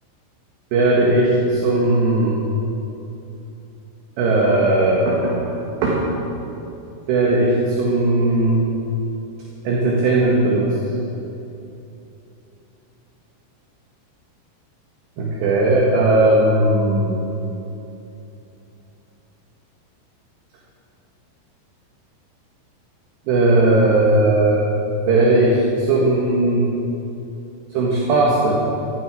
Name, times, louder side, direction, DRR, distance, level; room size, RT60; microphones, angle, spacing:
voice 1, 0.7-2.4 4.2-5.6 5.8-6.0 7.1-8.6 9.7-10.8 15.2-17.2 23.3-24.6 25.1-26.7 27.7-28.5, right 2 dB, 65° right, -3 dB, 3.5 m, -17 dB
16.5 x 16.0 x 4.7 m, 2.9 s
omnidirectional pair, 5.9 m